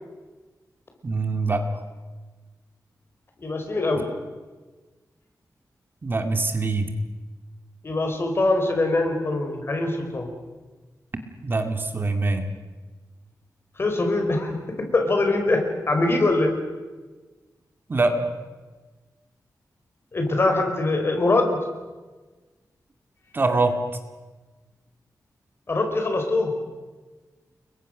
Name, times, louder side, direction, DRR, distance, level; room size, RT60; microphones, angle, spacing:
voice 1, 1.0-1.8 4.0-4.1 6.0-6.9 11.4-12.5 17.9-18.3 23.3-23.8, right 3 dB, 30° right, 6 dB, 2.2 m, -24 dB
voice 2, 3.4-4.1 7.8-10.3 13.8-14.6 14.9-16.5 20.1-21.6 25.7-26.5, left 2 dB, 35° left, 4 dB, 4.9 m, -23 dB
30.0 x 22.5 x 6.6 m, 1.3 s
wide cardioid pair, 170°, 7 cm